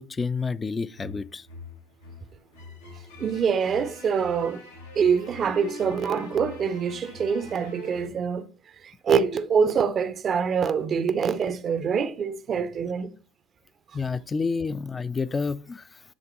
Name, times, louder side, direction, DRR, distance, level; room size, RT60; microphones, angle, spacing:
voice 1, 0.0-1.5 13.9-15.8, left 4 dB, 25° left, 0.4 m, -29 dB
sound 1, 0.9-8.1, left 3 dB, 85° left, 1.1 m, -44 dB
voice 2, 3.2-4.6 5.0-8.5 9.0-13.1, right 6 dB, 40° right, 0.5 m, -25 dB
10.0 x 3.5 x 3.0 m
figure-of-eight pair, 65°, 0 cm